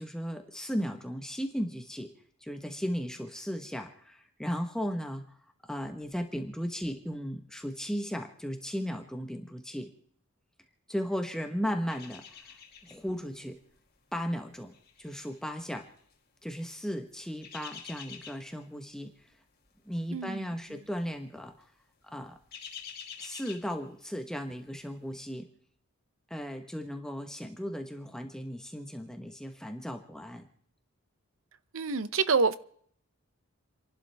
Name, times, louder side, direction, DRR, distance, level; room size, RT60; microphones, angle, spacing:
voice 1, 0.0-2.1 2.4-5.4 5.6-9.9 10.9-12.6 12.8-13.6 14.1-15.9 16.4-19.4 19.8-21.5 22.0-22.4 23.2-25.5 26.3-30.4, equal, 5° left, 1.1 m, -36 dB
sound 1, 11.9-13.2 13.5-13.8 14.5-16.1 17.1-18.6 19.0-19.3 19.6-19.7 20.7-21.1 21.4-21.6 22.0-24.3 24.7-24.8, left 7 dB, 45° left, 2.3 m, -47 dB
voice 2, 20.1-20.5 31.7-32.6, right 4 dB, 65° right, 0.7 m, -27 dB
30.0 x 12.0 x 3.4 m
head